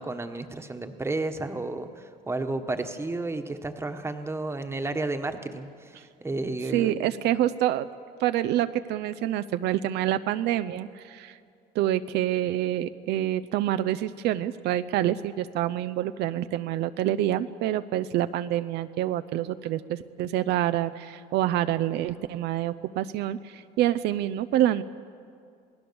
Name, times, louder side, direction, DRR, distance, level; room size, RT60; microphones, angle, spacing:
voice 1, 0.0-7.0, right 2 dB, 15° right, 7 dB, 1.3 m, -32 dB
voice 2, 6.7-7.9 8.2-11.4 11.7-24.8, right 12 dB, 80° right, 11 dB, 0.6 m, -27 dB
27.5 x 18.0 x 7.0 m, 2.4 s
cardioid pair, 110°, 17 cm